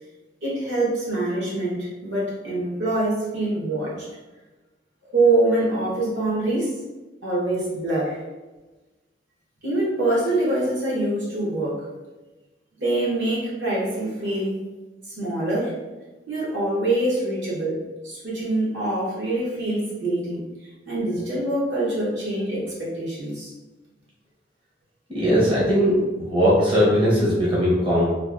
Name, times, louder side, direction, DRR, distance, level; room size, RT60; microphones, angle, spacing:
voice 1, 0.4-4.1 5.0-6.7 7.2-8.2 9.6-11.9 12.8-14.6 15.1-15.7 16.3-20.4 20.9-23.5, right 2 dB, 70° right, -7 dB, 1.4 m, -24 dB
voice 2, 25.1-28.0, equal, 30° right, -7 dB, 0.8 m, -19 dB
3.3 x 2.3 x 3.6 m, 1.2 s
head